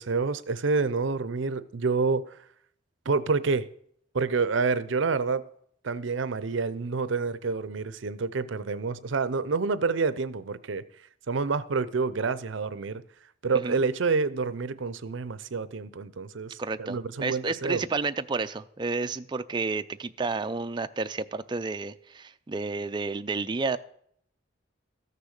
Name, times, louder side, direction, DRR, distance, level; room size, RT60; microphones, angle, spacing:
voice 1, 0.0-2.2 3.1-3.7 4.1-5.4 5.8-10.8 11.3-13.0 13.4-17.8, right 4 dB, 70° right, 0.6 m, -28 dB
voice 2, 16.6-23.8, right 3 dB, 25° right, 0.4 m, -31 dB
14.0 x 6.7 x 6.5 m
head